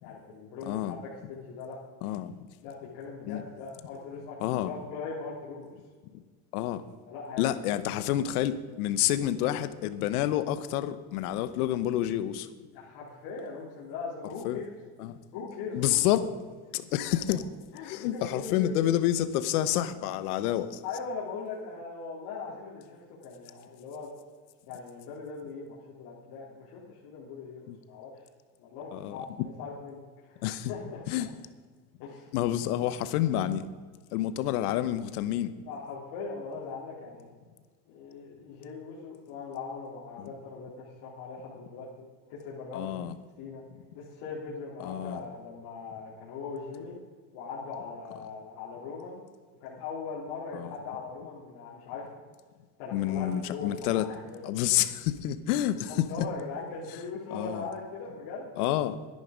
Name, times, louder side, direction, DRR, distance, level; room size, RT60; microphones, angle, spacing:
voice 1, 0.0-1.8 2.6-5.7 7.1-7.9 12.7-14.7 15.3-16.0 17.1-17.2 17.7-18.8 20.8-24.1 24.7-28.1 28.6-31.3 32.0-32.3 35.7-37.3 37.9-43.0 43.4-43.6 43.9-47.0 47.3-49.2 49.6-52.1 52.8-54.8 55.8-58.7, left 4 dB, 60° left, -7 dB, 3.6 m, -40 dB
voice 2, 0.7-1.0 2.0-2.4 3.3-3.4 4.4-4.7 6.5-6.8 7.4-12.5 14.4-14.6 15.0-15.2 15.7-16.3 16.7-17.4 17.8-20.8 27.7-27.8 28.9-29.2 30.4-30.7 31.1-31.3 32.3-33.7 34.1-35.5 40.2-40.3 42.7-43.1 44.8-45.2 50.5-50.7 52.9-54.1 54.4-56.0 57.3-57.7 58.6-59.0, left 12 dB, 90° left, 13 dB, 1.1 m, -28 dB
13.0 x 10.5 x 5.2 m, 1.5 s
supercardioid pair, 135°, 44 cm